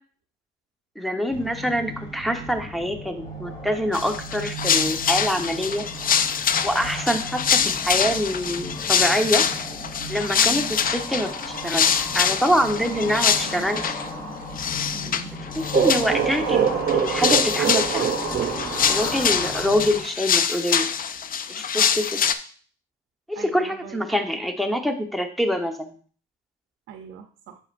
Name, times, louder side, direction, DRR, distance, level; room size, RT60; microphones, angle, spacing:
voice 1, 1.0-5.9 6.6-9.5 10.1-13.9 15.6-18.0 18.9-20.9 21.5-22.2 23.3-25.9, equal, ahead, 5 dB, 1.1 m, -25 dB
sound 1, 1.3-20.0, left 1 dB, 25° left, 3.2 m, -35 dB
sound 2, 3.9-14.1 14.6-15.2 15.5-16.3 16.7-22.3, left 7 dB, 45° left, 0.5 m, -24 dB
voice 2, 10.4-10.7 12.9-13.7 14.9-15.3 16.4-17.0 19.0-19.2 21.7-21.9 23.4-24.0 26.9-27.6, right 7 dB, 90° right, 5 dB, 0.7 m, -41 dB
sound 3, 15.7-19.4, right 8 dB, 55° right, 0.6 m, -24 dB
8.5 x 6.6 x 2.6 m, 0.44 s
cardioid pair, 90°, 20 cm